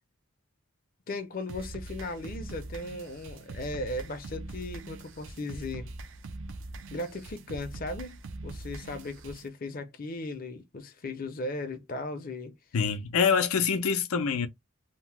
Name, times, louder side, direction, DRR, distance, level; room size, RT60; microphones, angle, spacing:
voice 1, 1.1-5.9 6.9-12.5, left 2 dB, 40° left, 0.5 m, -37 dB
sound 1, 1.5-9.5, right 2 dB, 60° right, 0.5 m, -42 dB
voice 2, 12.7-14.5, left 6 dB, 90° left, 0.5 m, -25 dB
2.8 x 2.1 x 3.1 m
head